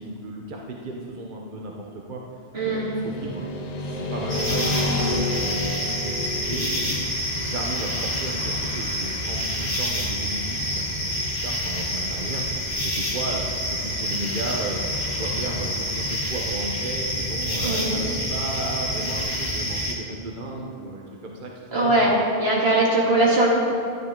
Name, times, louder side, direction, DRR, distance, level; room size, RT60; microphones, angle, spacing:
voice 1, 0.0-2.2 2.6-3.4 3.8-5.3 6.0-7.0 7.4-22.1 23.0-23.4, right 2 dB, 55° right, -1 dB, 1.0 m, -34 dB
Motorcycle / Traffic noise roadway noise, 2.5-15.7, left 2 dB, 45° left, 0.9 m, -33 dB
voice 2, 2.5-2.9 17.6-18.0 21.7-23.5, right 2 dB, 80° right, -5 dB, 2.5 m, -21 dB
sound 1, 4.3-19.9, equal, 75° left, 2.6 m, -28 dB
12.5 x 10.0 x 3.7 m, 2.5 s
omnidirectional pair, 1.0 m